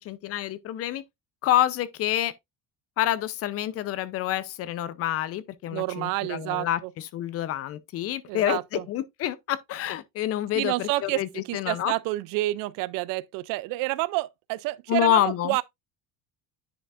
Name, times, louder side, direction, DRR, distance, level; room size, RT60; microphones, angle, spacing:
voice 1, 0.0-1.0 1.4-2.3 3.0-6.8 7.1-11.9 14.9-15.5, left 13 dB, 40° left, 0.6 m, -27 dB
voice 2, 5.7-6.9 8.3-8.8 10.6-15.6, right 19 dB, 65° right, 0.5 m, -29 dB
10.0 x 5.0 x 2.4 m
cardioid pair, 170°, 37 cm